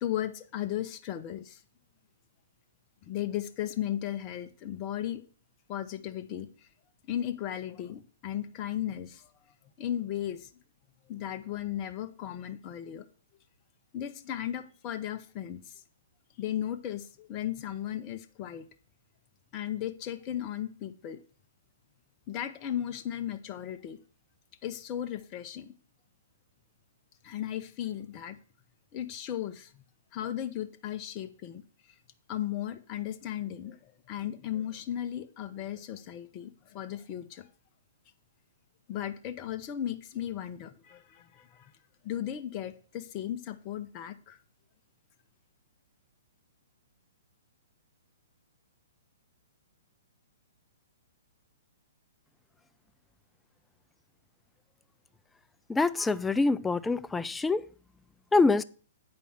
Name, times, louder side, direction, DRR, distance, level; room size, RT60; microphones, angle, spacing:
voice 1, 0.0-1.6 3.0-5.2 5.7-6.5 7.1-9.3 9.8-10.5 11.1-13.0 13.9-15.7 16.4-18.6 19.5-21.2 22.3-24.0 24.6-25.7 27.2-28.4 28.9-29.8 30.1-31.6 32.3-37.5 38.9-41.7 42.0-44.4, left 11 dB, 30° left, 0.8 m, -36 dB
voice 2, 55.7-57.7 58.3-58.6, left 3 dB, 10° left, 0.4 m, -25 dB
8.5 x 5.5 x 5.6 m
figure-of-eight pair, 115°, 0 cm